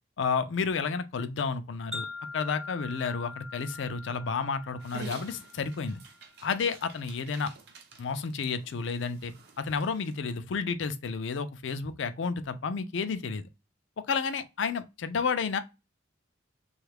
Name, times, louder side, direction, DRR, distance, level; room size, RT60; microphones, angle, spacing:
voice 1, 0.2-2.1 2.3-6.0 6.4-7.5 8.0-9.3 9.6-13.5 14.1-15.6, left 5 dB, 65° left, 0.4 m, -31 dB
Wind chime, 1.9-6.2, left 3 dB, ahead, 0.4 m, -43 dB
Dog, 4.8-10.1, right 3 dB, 55° right, 0.7 m, -49 dB
3.1 x 2.3 x 3.3 m
head